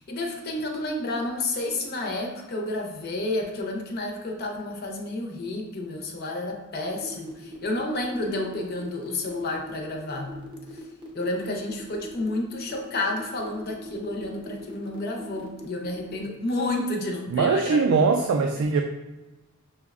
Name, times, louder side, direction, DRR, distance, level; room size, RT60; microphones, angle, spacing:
voice 1, 0.0-10.4 10.7-10.8 11.1-17.8 18.6-18.8, left 2 dB, 50° left, 1 dB, 0.5 m, -30 dB
sound 1, 6.9-16.2, left 1 dB, 25° right, 0.6 m, -41 dB
voice 2, 17.3-18.8, right 4 dB, 85° right, 3 dB, 0.3 m, -21 dB
5.9 x 2.1 x 2.3 m, 1.1 s
head